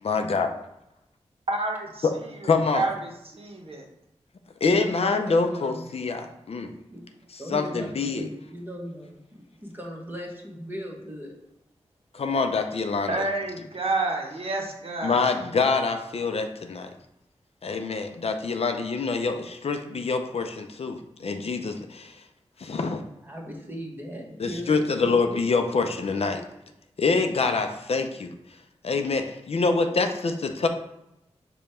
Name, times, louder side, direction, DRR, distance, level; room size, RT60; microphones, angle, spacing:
voice 1, 0.0-0.5 2.0-2.1 2.4-2.9 4.6-6.7 7.3-8.3 12.1-13.1 15.0-16.9 17.6-22.1 22.6-23.0 24.4-26.4 27.0-28.3 28.8-30.7, left 4 dB, 60° left, 6 dB, 0.5 m, -25 dB
voice 2, 1.5-3.8 13.1-15.4, right 2 dB, 55° right, 1 dB, 0.8 m, -30 dB
voice 3, 4.6-5.9 6.9-7.0 7.4-11.3 23.2-25.2, equal, 15° right, 0 dB, 1.0 m, -38 dB
5.1 x 2.2 x 4.3 m, 0.88 s
wide cardioid pair, 65°, 12 cm